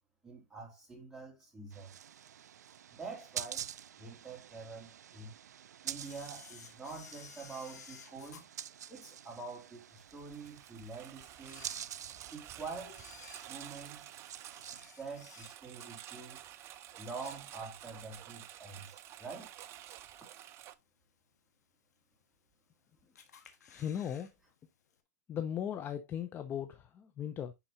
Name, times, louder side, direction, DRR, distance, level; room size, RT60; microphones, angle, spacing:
voice 1, 0.2-1.9 2.9-3.7 4.0-5.3 5.8-8.4 8.9-11.7 12.3-13.0 13.5-14.1 15.0-16.4 17.0-19.5, right 4 dB, 5° right, 3.7 m, -46 dB
sound 1, 1.7-14.9, right 9 dB, 85° right, 0.3 m, -48 dB
Camera, 5.9-9.5 10.0-10.1 10.8-10.9 11.4-12.4 12.9-15.9 16.2-16.5 16.9-17.9 18.3-18.4 19.3-19.4 20.0-20.4 20.8-20.9 21.1-21.2 21.3-21.4 22.2-22.7 23.2-24.3 24.6-24.7 24.9-25.0, left 7 dB, 85° left, 1.5 m, -55 dB
Engine, 10.1-20.7, right 12 dB, 30° right, 0.6 m, -51 dB
voice 2, 23.7-24.3 25.3-27.5, left 9 dB, 25° left, 0.7 m, -38 dB
11.0 x 4.2 x 2.7 m
hypercardioid pair, 130°, 9 cm